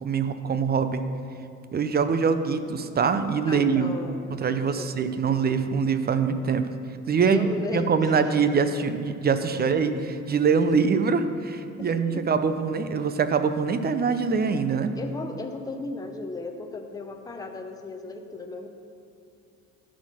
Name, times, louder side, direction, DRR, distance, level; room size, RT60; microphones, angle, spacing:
voice 1, 0.0-1.1 1.7-3.9 4.3-6.7 7.1-14.9, right 5 dB, 25° right, 10 dB, 0.6 m, -24 dB
voice 2, 3.5-4.2 4.8-4.9 7.2-8.2 9.5-9.6 11.8-12.2 15.0-18.7, left 3 dB, 10° left, 4 dB, 0.8 m, -35 dB
11.5 x 4.5 x 5.7 m, 2.6 s
figure-of-eight pair, 55°, 39 cm